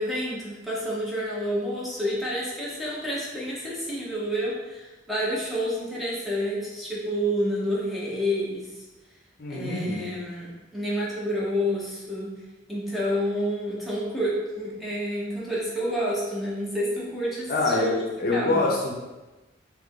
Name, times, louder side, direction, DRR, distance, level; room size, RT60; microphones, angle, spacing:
voice 1, 0.0-8.7 9.5-12.3 12.7-18.6, equal, ahead, -7 dB, 0.7 m, -29 dB
voice 2, 9.4-10.1 17.5-18.9, left 2 dB, 55° left, -2 dB, 0.6 m, -25 dB
2.9 x 2.5 x 3.6 m, 1.1 s
head